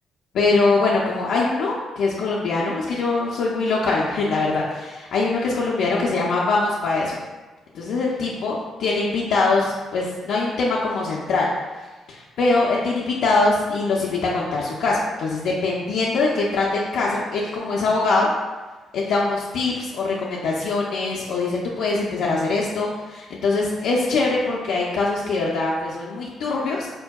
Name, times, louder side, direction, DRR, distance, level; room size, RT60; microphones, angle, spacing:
voice 1, 0.3-7.2 7.7-11.5 11.8-18.3 18.9-26.9, left 3 dB, 75° left, -5 dB, 0.4 m, -23 dB
4.3 x 2.6 x 2.2 m, 1.2 s
cardioid pair, 90°, 0 cm